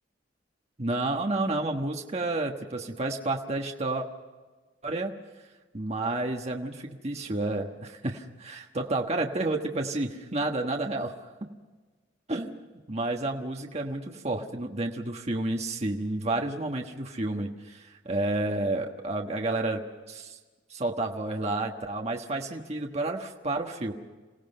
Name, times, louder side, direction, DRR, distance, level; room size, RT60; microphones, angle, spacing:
voice 1, 0.8-4.1 4.8-5.1 5.7-11.1 11.4-11.5 12.3-12.6 12.9-19.8 20.1-20.4 20.7-23.9, right 2 dB, 35° right, 2 dB, 1.3 m, -30 dB
27.5 x 17.0 x 5.5 m, 1.3 s
head